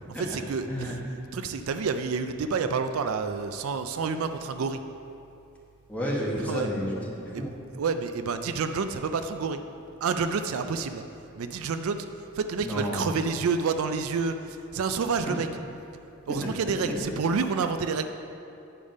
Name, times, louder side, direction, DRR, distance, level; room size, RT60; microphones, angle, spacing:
voice 1, 0.2-1.0 1.3-4.8 6.5-6.7 7.3-7.5 7.8-9.6 10.0-11.0 11.4-12.1 12.3-15.5 16.3-18.0, right 5 dB, 80° right, 9 dB, 0.4 m, -29 dB
voice 2, 5.9-7.5 12.6-13.1 15.2-15.3 16.4-16.5 16.8-17.0, equal, 5° left, -5 dB, 1.2 m, -31 dB
8.9 x 5.0 x 5.3 m, 2.7 s
head